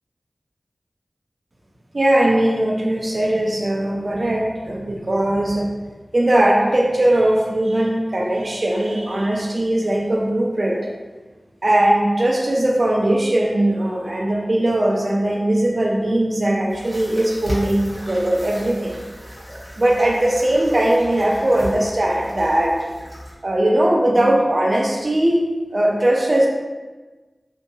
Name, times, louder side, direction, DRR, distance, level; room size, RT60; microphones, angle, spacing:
voice 1, 1.9-5.7 6.1-10.9 11.6-18.9 19.8-22.8 23.4-25.4 25.7-26.5, right 1 dB, 50° right, -1 dB, 0.5 m, -19 dB
sound 1, 16.7-23.4, equal, 15° left, 1.2 m, -35 dB
2.8 x 2.7 x 2.3 m, 1.3 s
wide cardioid pair, 55°, 0 cm